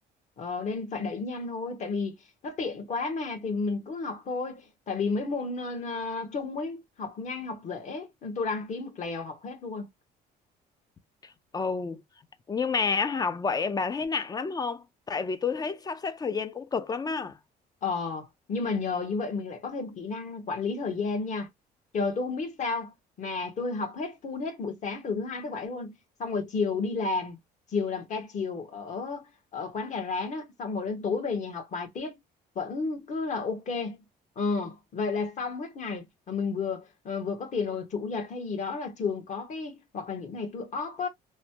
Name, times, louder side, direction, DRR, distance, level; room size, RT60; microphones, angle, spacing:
voice 1, 0.4-2.1 2.4-9.9 17.8-21.5 21.9-27.4 27.7-32.2 32.5-34.0 34.4-41.1, left 4 dB, 45° left, 1.1 m, -32 dB
voice 2, 11.2-12.0 12.5-17.4, left 5 dB, 25° left, 0.4 m, -30 dB
3.1 x 2.1 x 2.7 m
cardioid pair, 110°, 17 cm